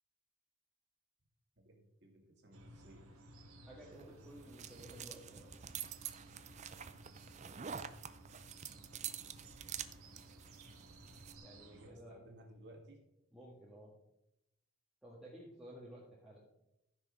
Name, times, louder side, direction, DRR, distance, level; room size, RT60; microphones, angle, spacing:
voice 1, 1.6-3.1 11.7-13.0, right 1 dB, 50° right, 2 dB, 2.2 m, -58 dB
sound 1, 2.5-11.9, right 1 dB, 80° right, 1.6 m, -57 dB
voice 2, 3.6-5.5 11.4-12.3 13.3-13.9 15.0-16.4, right 1 dB, ahead, -8 dB, 1.8 m, -54 dB
sound 2, 3.9-11.4, right 8 dB, 30° right, 0.5 m, -48 dB
15.0 x 6.3 x 3.6 m, 0.85 s
head